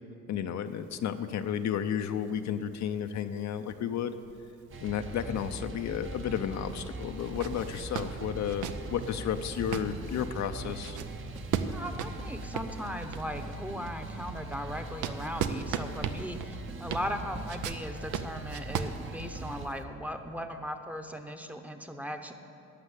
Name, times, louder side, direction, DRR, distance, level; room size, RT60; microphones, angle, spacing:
voice 1, 0.3-4.1 4.8-11.0, left 9 dB, 65° left, 8 dB, 0.6 m, -32 dB
sound 1, 0.7-6.0 6.4-6.5 7.1-13.5 14.0-19.8, right 8 dB, 80° right, 0.7 m, -38 dB
sound 2, 4.7-19.7, right 2 dB, 40° right, 0.9 m, -41 dB
voice 2, 11.7-22.3, equal, 5° right, 6 dB, 0.8 m, -38 dB
12.0 x 6.4 x 8.1 m, 2.8 s
cardioid pair, 90°, 30 cm